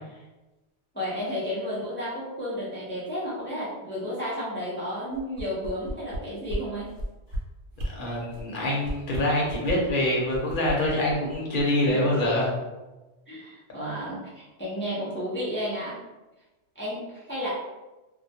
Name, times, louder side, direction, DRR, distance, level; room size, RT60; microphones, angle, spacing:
voice 1, 0.9-6.9 11.9-12.1 13.3-16.0 16.8-17.5, equal, 15° left, -8 dB, 0.4 m, -32 dB
sound 1, 5.1-6.2 6.5-6.6 6.9-7.4 7.7-7.9 8.3-8.5 8.8-9.9 10.3-11.9 12.2-12.3, right 1 dB, 75° right, 0.9 m, -33 dB
voice 2, 8.0-12.5, left 1 dB, 55° left, -3 dB, 0.7 m, -25 dB
2.2 x 2.1 x 2.7 m, 1.1 s
omnidirectional pair, 1.1 m